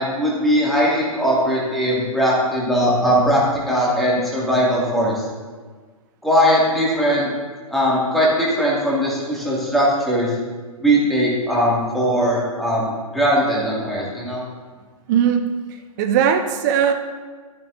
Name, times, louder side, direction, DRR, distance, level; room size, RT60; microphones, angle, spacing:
voice 1, 0.0-5.2 6.2-7.3 7.7-10.3 10.8-14.4, equal, ahead, -7 dB, 2.3 m, -19 dB
voice 2, 15.1-16.9, right 8 dB, 30° right, 6 dB, 0.7 m, -19 dB
12.0 x 11.0 x 2.7 m, 1.4 s
figure-of-eight pair, 120°, 19 cm